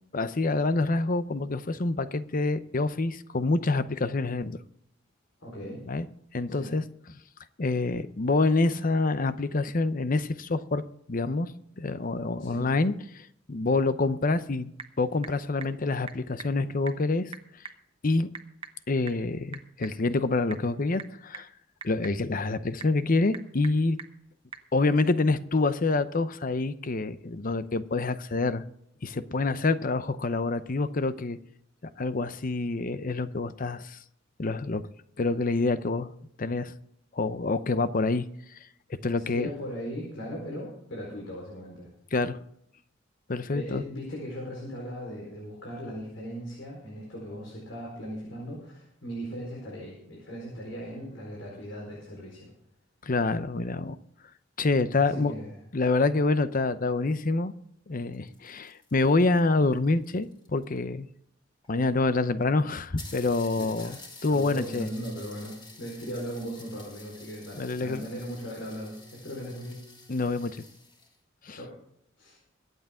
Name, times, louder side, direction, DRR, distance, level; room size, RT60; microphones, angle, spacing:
voice 1, 0.1-4.6 5.9-6.1 6.3-6.8 7.6-10.8 11.1-11.5 11.8-14.7 15.0-17.3 18.0-18.3 18.9-21.5 21.8-24.0 24.7-28.6 29.0-31.4 32.0-34.0 34.4-34.8 35.2-36.1 36.4-36.7 37.1-38.3 39.0-39.5 42.1-42.4 43.3-43.8 53.0-54.0 54.6-55.3 55.7-57.5 57.9-61.1 61.7-64.9 67.6-68.0 70.1-70.6 71.4-71.6, left 3 dB, 45° left, 13 dB, 0.7 m, -27 dB
voice 2, 5.4-5.8 6.5-6.7 12.4-12.7 39.2-41.9 43.5-52.5 55.0-55.6 63.6-64.0 64.3-69.8 71.5-71.8 72.2-72.4, equal, 75° left, -3 dB, 4.5 m, -38 dB
Typing / Telephone, 14.2-24.7, right 5 dB, 30° right, 1.1 m, -47 dB
sound 1, 58.0-60.8 61.6-61.7 62.0-62.1 62.4-62.5 63.0-71.2, left 2 dB, 25° left, 3.3 m, -50 dB
23.5 x 8.2 x 3.7 m, 0.73 s
head